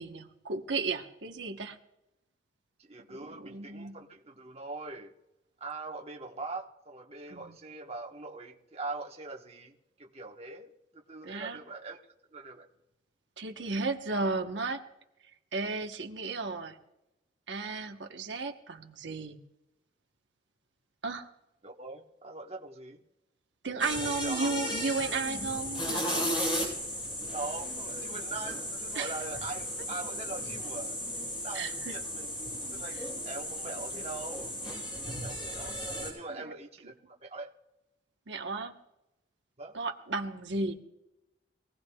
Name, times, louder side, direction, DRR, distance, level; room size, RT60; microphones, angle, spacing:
voice 1, 0.0-1.8 3.1-4.0 7.3-7.5 11.2-11.6 13.4-14.8 15.5-16.8 17.5-19.4 21.0-21.3 23.6-26.4 28.9-29.1 31.5-31.9 36.4-36.5 38.3-38.7 39.7-40.7, right 3 dB, 85° right, 4 dB, 1.1 m, -34 dB
voice 2, 2.8-5.1 5.6-12.0 12.3-12.7 21.6-23.0 24.0-24.5 27.3-31.0 31.4-32.3 32.6-34.5 35.0-37.5 39.6-39.7, right 3 dB, 35° right, 0 dB, 1.2 m, -42 dB
sound 1, 23.8-36.1, equal, 30° left, 7.0 m, -35 dB
23.5 x 17.0 x 2.3 m, 0.92 s
head